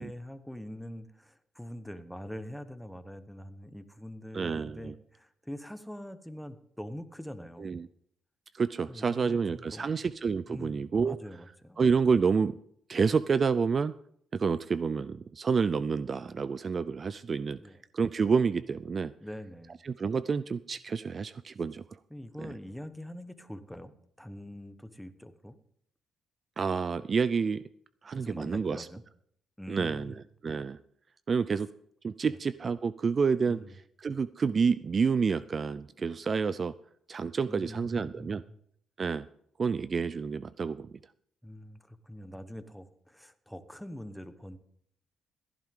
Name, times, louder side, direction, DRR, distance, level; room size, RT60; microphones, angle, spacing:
voice 1, 0.0-7.8 8.9-10.0 10.5-11.8 17.6-17.8 19.2-19.8 22.1-23.9 24.2-25.5 28.2-29.0 29.6-30.3 31.5-31.6 32.2-32.4 33.4-33.7 37.5-38.6 41.4-44.6, equal, 5° left, 10 dB, 1.1 m, -44 dB
voice 2, 4.3-4.9 7.6-7.9 8.5-11.2 11.8-12.6 12.9-13.9 14.3-17.6 17.9-19.1 19.8-21.8 22.4-22.5 26.6-27.6 28.0-28.9 29.7-30.8 31.3-31.7 32.0-33.6 34.0-36.7 37.1-38.4 39.0-39.3 39.6-41.0, right 5 dB, 40° right, 16 dB, 0.4 m, -29 dB
16.0 x 10.5 x 3.7 m, 0.68 s
cardioid pair, 90°, 0 cm